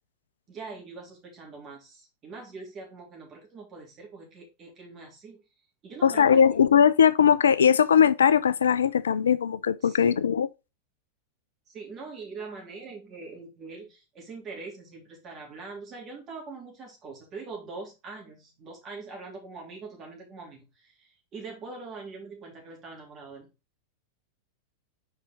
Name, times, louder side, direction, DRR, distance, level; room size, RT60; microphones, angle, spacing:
voice 1, 0.5-5.4 5.8-6.4 9.8-10.2 11.7-23.5, right 4 dB, 30° right, 3.2 m, -43 dB
voice 2, 6.0-10.5, left 7 dB, 70° left, 0.3 m, -20 dB
5.4 x 4.9 x 4.0 m
figure-of-eight pair, 90°, 0 cm